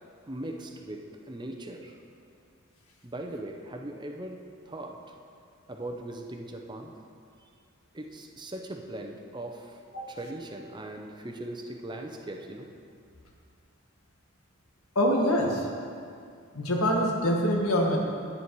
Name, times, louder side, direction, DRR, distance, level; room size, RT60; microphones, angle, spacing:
voice 1, 0.3-1.9 3.0-4.4 4.7-5.0 5.7-6.9 7.9-12.7, right 1 dB, 20° right, 3 dB, 0.7 m, -39 dB
voice 2, 14.9-15.6 16.5-18.0, equal, 85° left, 0 dB, 1.7 m, -24 dB
10.0 x 9.8 x 4.7 m, 2.3 s
head